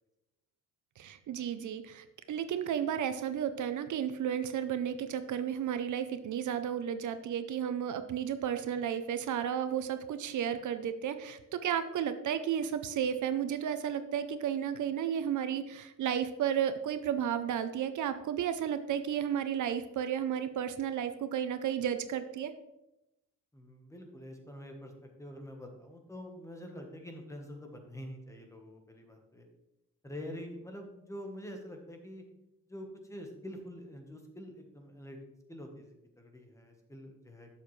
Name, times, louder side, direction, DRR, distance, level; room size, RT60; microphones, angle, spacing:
voice 1, 1.0-22.5, right 9 dB, 65° right, 10 dB, 0.6 m, -33 dB
voice 2, 23.5-24.9 25.2-29.5 30.0-32.2 32.7-35.2 35.5-37.5, equal, 10° left, 3 dB, 1.1 m, -46 dB
11.5 x 7.3 x 3.2 m, 0.90 s
wide cardioid pair, 180°, 33 cm